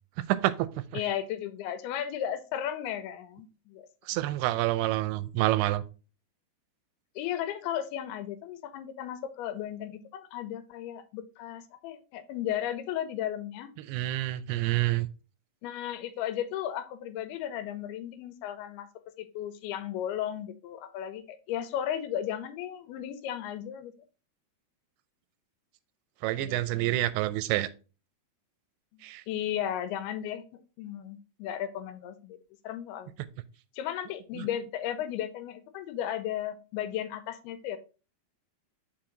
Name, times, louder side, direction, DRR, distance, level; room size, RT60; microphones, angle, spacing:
voice 1, 0.3-1.0 4.1-5.8 13.9-15.1 26.2-27.7 29.0-29.2 34.4-34.5, right 16 dB, 90° right, 2.6 m, -28 dB
voice 2, 0.9-4.2 7.2-13.7 15.6-18.9 19.2-23.9 26.4-27.0 28.9-30.4 30.8-32.4 32.6-33.2 33.7-37.8, left 10 dB, 90° left, 2.6 m, -35 dB
5.7 x 4.7 x 3.8 m
omnidirectional pair, 4.5 m